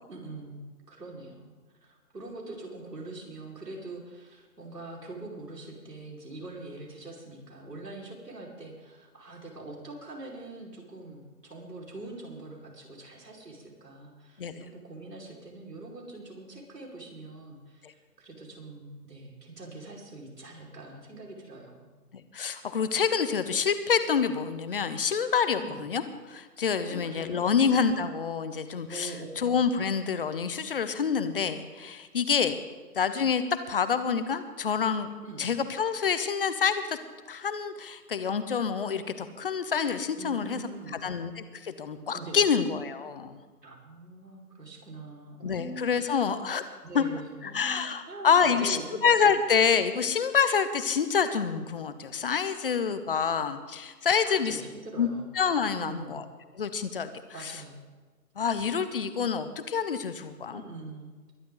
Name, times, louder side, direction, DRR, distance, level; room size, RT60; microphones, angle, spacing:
voice 1, 0.1-1.5 1.8-21.9 25.5-25.8 26.7-27.6 28.9-29.3 35.2-35.5 40.2-41.0 42.1-42.4 43.6-46.3 46.8-49.0 54.2-55.3 55.8-56.2 57.3-57.8 60.5-61.4, right 2 dB, 85° right, -2 dB, 5.3 m, -43 dB
voice 2, 22.1-26.0 26.3-32.6 32.9-35.1 35.4-37.0 37.3-40.6 41.0-43.4 45.4-46.6 46.9-47.0 47.4-54.6 55.0-55.1 55.3-56.2 56.5-57.1 57.4-57.6 58.4-60.6, left 6 dB, 35° left, 11 dB, 1.0 m, -27 dB
22.0 x 11.0 x 4.0 m, 1.4 s
figure-of-eight pair, 155°, 47 cm